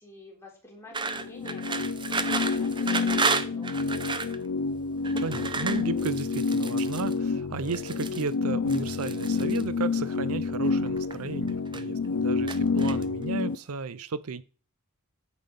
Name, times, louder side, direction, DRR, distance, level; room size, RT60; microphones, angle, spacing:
voice 1, 0.0-1.8 2.1-4.3, left 2 dB, 10° left, 3.8 m, -50 dB
sound 1, 0.9-4.4 5.0-7.1 7.6-8.3 8.7-9.6 10.5-11.2 11.5-12.1 12.5-13.2, right 4 dB, 20° right, 0.7 m, -32 dB
sound 2, 1.0-13.6, left 4 dB, 80° left, 0.5 m, -29 dB
voice 2, 5.2-14.4, right 5 dB, 75° right, 0.6 m, -34 dB
9.2 x 7.7 x 5.2 m
head